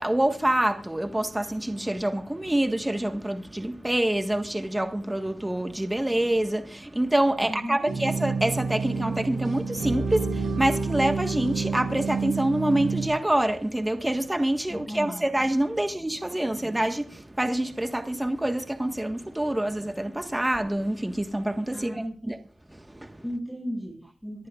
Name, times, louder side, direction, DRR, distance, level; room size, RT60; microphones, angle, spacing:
voice 1, 0.0-22.4 22.7-23.2, right 1 dB, 15° right, 1.5 m, -26 dB
voice 2, 7.4-7.9 14.7-15.2 16.5-16.6 21.7-22.2 23.2-24.5, equal, 5° left, 6.2 m, -35 dB
sound 1, 7.9-13.1, right 4 dB, 85° right, 6.6 m, -29 dB
23.5 x 14.5 x 2.5 m
cardioid pair, 45°, 0 cm